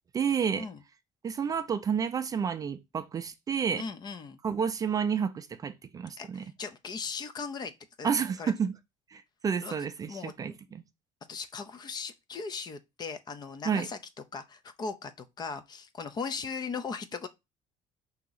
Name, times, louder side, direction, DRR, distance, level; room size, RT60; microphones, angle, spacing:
voice 1, 0.1-0.7 1.2-3.8 4.4-6.4 8.0-8.7 9.1-10.8 13.6-13.9, right 7 dB, 25° right, 0.4 m, -30 dB
voice 2, 3.8-4.4 6.2-7.7 8.0-8.1 8.4-8.5 9.6-9.7 10.1-10.5 11.3-14.0 14.3-15.1 15.4-17.3, left 5 dB, 30° left, 0.5 m, -38 dB
4.8 x 2.8 x 3.9 m
cardioid pair, 135°, 13 cm